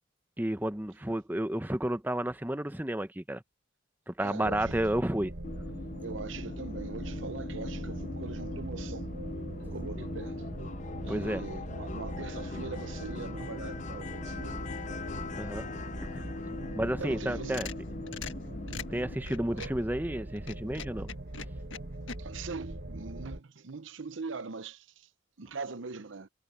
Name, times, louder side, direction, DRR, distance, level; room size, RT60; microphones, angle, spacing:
voice 1, 0.4-3.4 4.1-5.3 11.1-11.4 15.4-15.7 16.1-17.7 18.9-21.1, right 1 dB, 10° right, 0.8 m, -32 dB
voice 2, 4.2-4.8 6.0-9.1 9.6-10.5 11.1-14.6 17.0-17.6 18.7-18.9 19.5-19.7 22.2-25.1 25.4-26.3, right 4 dB, 80° right, 0.8 m, -41 dB
sound 1, 4.4-23.4, right 1 dB, 60° right, 1.5 m, -41 dB
sound 2, 5.4-19.1, left 3 dB, 40° left, 0.6 m, -41 dB
sound 3, 17.2-19.8 20.4-22.2, left 6 dB, 80° left, 1.6 m, -43 dB
head